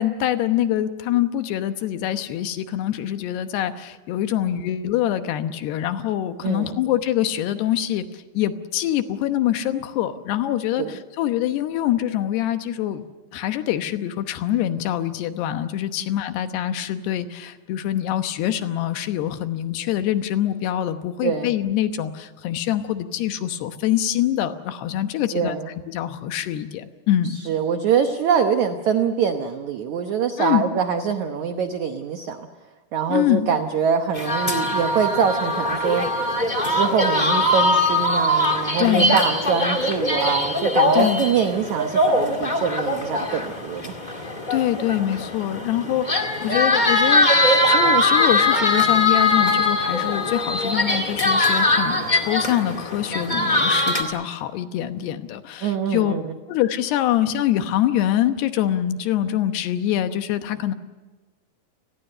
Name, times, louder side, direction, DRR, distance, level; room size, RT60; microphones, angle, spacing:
voice 1, 0.0-13.0 13.3-25.6 25.9-27.4 30.4-30.6 33.1-33.5 38.5-39.2 40.9-41.2 44.2-47.3 47.7-56.1 56.5-60.7, left 12 dB, 75° left, 9 dB, 3.1 m, -24 dB
voice 2, 6.4-6.8 10.8-10.9 21.2-21.5 25.3-25.7 27.3-32.4 32.9-36.1 36.7-43.9 55.6-56.2, right 7 dB, 75° right, 7 dB, 1.7 m, -24 dB
sound 1, 34.1-54.0, left 2 dB, 50° left, 0.5 m, -21 dB
29.5 x 20.0 x 6.7 m, 1.3 s
omnidirectional pair, 4.9 m